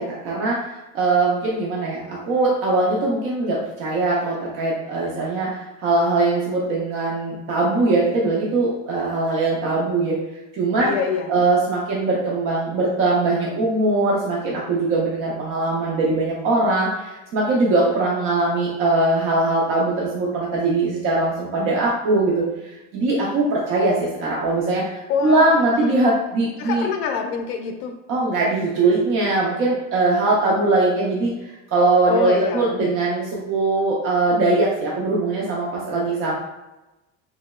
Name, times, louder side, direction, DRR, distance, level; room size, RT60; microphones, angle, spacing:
voice 1, 0.0-10.2 10.5-10.9 11.3-26.9 28.1-36.3, right 2 dB, 35° right, -4 dB, 0.4 m, -21 dB
voice 2, 10.8-11.3 25.1-25.9 26.6-28.0 32.0-33.0, left 6 dB, 75° left, 5 dB, 0.5 m, -26 dB
3.0 x 2.7 x 2.2 m, 1.0 s
cardioid pair, 170°, 38 cm